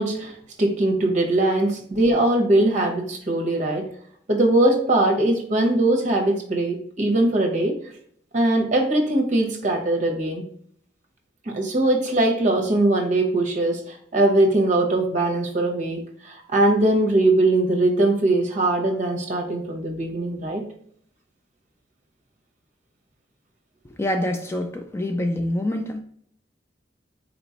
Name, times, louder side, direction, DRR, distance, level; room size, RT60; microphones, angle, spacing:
voice 1, 0.0-3.9 4.3-7.7 8.3-10.4 11.5-20.6, right 2 dB, 45° right, 3 dB, 0.8 m, -21 dB
voice 2, 24.0-26.0, left 1 dB, 15° left, 5 dB, 0.3 m, -26 dB
4.2 x 3.0 x 2.8 m, 0.64 s
head